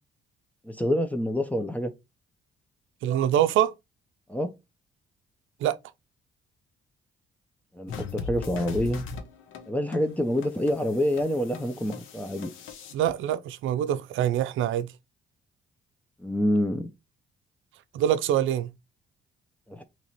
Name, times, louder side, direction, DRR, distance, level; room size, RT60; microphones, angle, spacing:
voice 1, 0.7-1.9 4.3-4.5 7.7-9.0 9.7-12.5 16.2-16.9 19.7-19.8, left 1 dB, 5° left, 0.5 m, -27 dB
voice 2, 3.0-3.7 5.6-5.8 12.9-14.9 17.9-18.7, right 11 dB, 80° right, 0.5 m, -24 dB
sound 1, 7.9-12.9, left 4 dB, 80° left, 0.9 m, -40 dB
3.0 x 2.9 x 4.0 m
cardioid pair, 90°, 20 cm